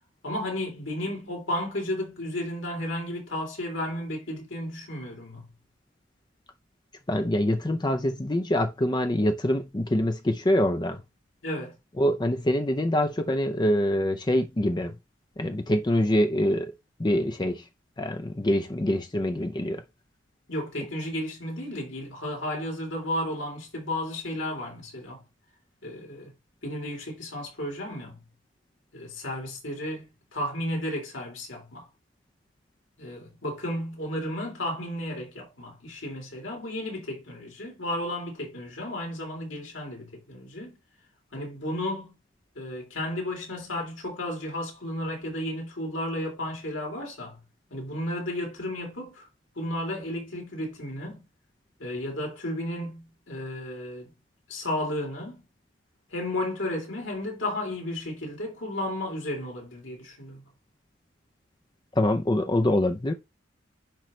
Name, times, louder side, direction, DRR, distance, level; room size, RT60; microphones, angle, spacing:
voice 1, 0.2-5.4 11.4-11.7 20.5-25.2 25.8-26.3 26.6-28.2 28.9-31.9 33.0-40.8 41.3-42.1 42.6-47.4 47.7-49.3 49.6-51.2 51.8-54.1 54.5-55.4 56.1-60.4, left 1 dB, 75° left, 3.4 m, -33 dB
voice 2, 7.1-11.0 12.0-14.9 15.4-16.7 17.0-17.6 18.0-19.8 62.0-63.1, left 1 dB, 20° left, 0.5 m, -25 dB
10.0 x 3.9 x 3.2 m
head